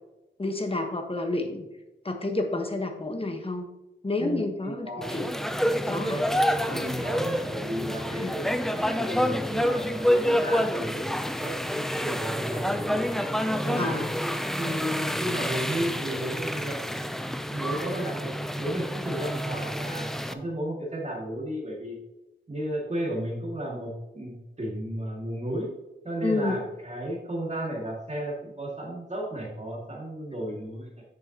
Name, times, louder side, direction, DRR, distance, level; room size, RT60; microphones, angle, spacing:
voice 1, 0.4-1.7 2.0-3.7 4.0-5.3 5.9-6.2 6.7-6.8 8.1-8.3 13.8-14.1 26.2-26.6, left 2 dB, 30° left, 4 dB, 1.3 m, -29 dB
voice 2, 4.2-5.2 6.5-13.1 13.6-14.0 14.6-16.8 17.5-22.0 22.5-25.7 26.0-30.9, right 1 dB, 35° right, -4 dB, 2.2 m, -34 dB
sound 1, 5.0-20.3, equal, ahead, 0.5 m, -28 dB
9.4 x 7.0 x 2.9 m, 0.99 s
wide cardioid pair, 90°, 20 cm